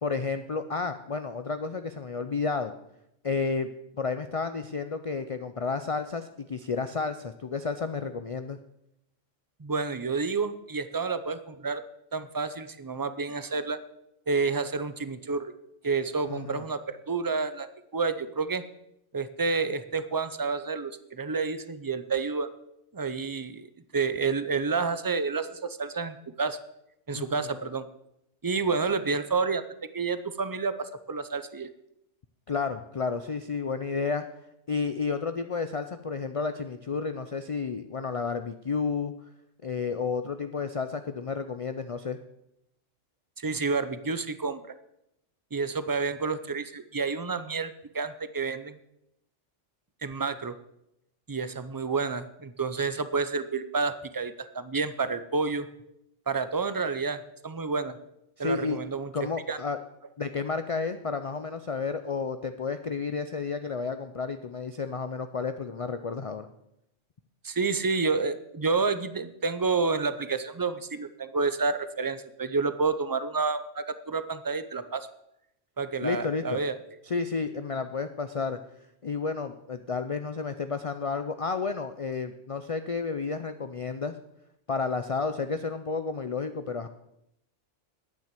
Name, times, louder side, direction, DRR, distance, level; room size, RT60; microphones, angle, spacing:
voice 1, 0.0-2.7 3.2-3.7 4.0-8.6 16.2-16.6 27.1-27.5 32.5-34.2 34.7-39.1 39.6-42.2 58.4-58.8 59.1-59.8 60.2-66.5 76.0-76.6 77.0-78.6 79.0-84.2 84.7-86.9, left 4 dB, 45° left, 9 dB, 0.4 m, -31 dB
voice 2, 9.6-11.8 12.1-13.8 14.3-15.5 15.8-17.7 17.9-18.6 19.1-22.5 22.9-23.7 23.9-26.6 27.1-27.9 28.4-29.6 29.9-31.7 43.4-44.7 45.5-48.8 50.0-50.6 51.3-55.7 56.3-57.9 58.4-59.1 59.5-59.6 67.4-75.1 75.8-76.8, right 4 dB, 25° right, 12 dB, 0.4 m, -29 dB
10.5 x 9.2 x 7.5 m, 0.82 s
omnidirectional pair, 1.3 m